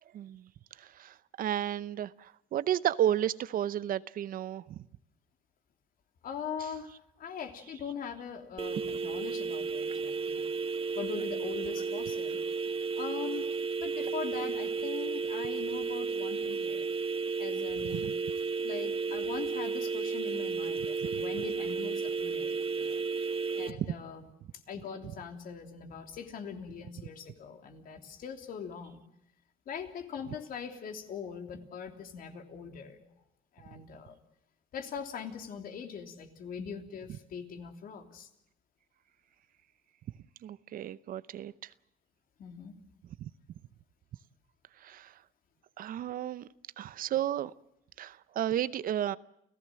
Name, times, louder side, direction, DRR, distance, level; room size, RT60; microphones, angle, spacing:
voice 1, 0.1-0.5 0.8-4.8 17.9-18.1 21.1-21.2 23.7-23.9 40.4-41.7 43.2-43.3 44.8-45.1 45.8-46.5 46.8-47.5 48.0-49.2, right 11 dB, 55° right, 0.8 m, -33 dB
voice 2, 6.2-10.4 10.9-12.4 13.0-13.5 13.8-16.9 17.4-18.1 18.6-23.0 23.5-24.3 24.7-29.0 29.6-33.0 33.5-34.2 34.7-38.3 42.4-42.7, left 6 dB, 60° left, 3.3 m, -42 dB
sound 1, 8.6-23.7, right 4 dB, 35° right, 1.5 m, -33 dB
29.5 x 16.0 x 7.6 m
cardioid pair, 110°, 17 cm